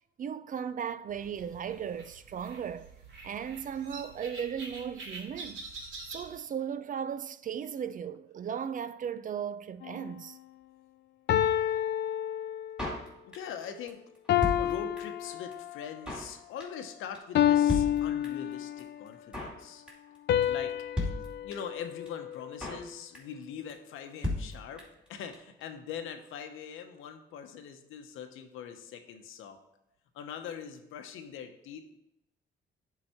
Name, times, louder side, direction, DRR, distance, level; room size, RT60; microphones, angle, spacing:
voice 1, 0.2-2.9 3.2-5.6 6.1-10.4, right 8 dB, 45° right, 0.4 m, -36 dB
sound 1, 1.1-6.4, right 3 dB, 75° right, 2.4 m, -46 dB
sound 2, 9.8-10.1 11.3-12.9 14.3-15.9 17.3-19.0 20.3-22.7, left 11 dB, 60° left, 0.4 m, -29 dB
Drum kit, 12.8-13.6 13.9-14.0 14.1-15.2 15.5-15.6 15.8-16.3 16.6-16.9 17.1-17.2 17.4-17.5 17.7-18.5 18.8-18.9 19.1-19.6 19.9-20.2 20.4-20.5 20.7-20.8 21.0-21.8 22.1-22.2 22.3-22.9 23.1-23.4 23.7-23.8 24.0-24.1 24.2-25.1 25.3-25.4 25.6-25.7, left 2 dB, 5° right, 2.5 m, -35 dB
voice 2, 13.2-14.0 14.6-19.8 20.4-20.8 21.4-24.8 25.1-29.6 30.1-32.0, left 7 dB, 85° left, 0.9 m, -42 dB
9.4 x 4.0 x 4.4 m
cardioid pair, 90°, 20 cm